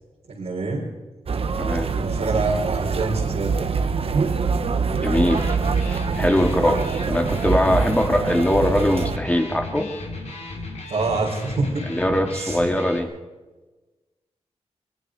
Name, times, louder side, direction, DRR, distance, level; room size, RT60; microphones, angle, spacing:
voice 1, 0.3-0.9 1.9-3.7 10.9-11.9 12.3-12.6, right 3 dB, 80° right, -4 dB, 4.3 m, -26 dB
sound 1, 1.3-9.2, right 5 dB, 60° right, 1.1 m, -24 dB
voice 2, 1.6-1.9 5.0-5.6 5.9-9.9 11.9-13.1, left 1 dB, 10° left, 2 dB, 2.8 m, -21 dB
Electric guitar, 5.0-13.0, left 2 dB, 85° left, 3.0 m, -35 dB
24.5 x 21.5 x 5.2 m, 1.2 s
wide cardioid pair, 85°, 11 cm